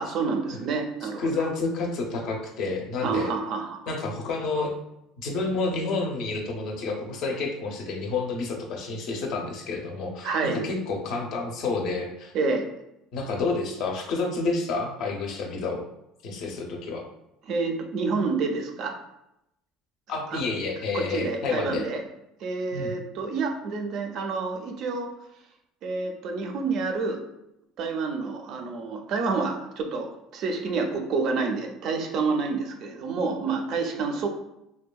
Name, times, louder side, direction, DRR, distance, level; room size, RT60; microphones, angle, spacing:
voice 1, 0.0-1.5 3.0-3.9 10.2-10.6 12.3-12.7 17.4-19.0 20.3-20.4 20.9-22.0 22.4-25.1 25.8-27.2 27.8-34.3, right 4 dB, 50° right, 4 dB, 0.4 m, -28 dB
voice 2, 1.0-3.3 3.9-4.7 5.2-12.3 13.1-15.8 16.2-17.0 20.1-21.8 22.7-22.9, left 3 dB, 55° left, 2 dB, 0.5 m, -29 dB
2.7 x 2.2 x 2.2 m, 0.85 s
cardioid pair, 140°, 0 cm